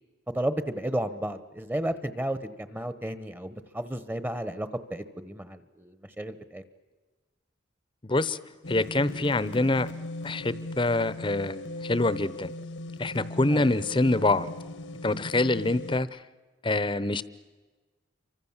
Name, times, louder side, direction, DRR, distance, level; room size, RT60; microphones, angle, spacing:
voice 1, 0.3-6.6 13.5-13.7, right 1 dB, 10° right, 13 dB, 1.0 m, -33 dB
voice 2, 8.0-8.4 8.7-9.9 10.2-12.5 13.0-14.5 15.0-16.2 16.6-17.2, left 2 dB, 25° left, 17 dB, 0.8 m, -25 dB
sound 1, 8.6-16.0, left 1 dB, 75° left, 1.2 m, -39 dB
28.0 x 25.0 x 7.3 m, 1.3 s
head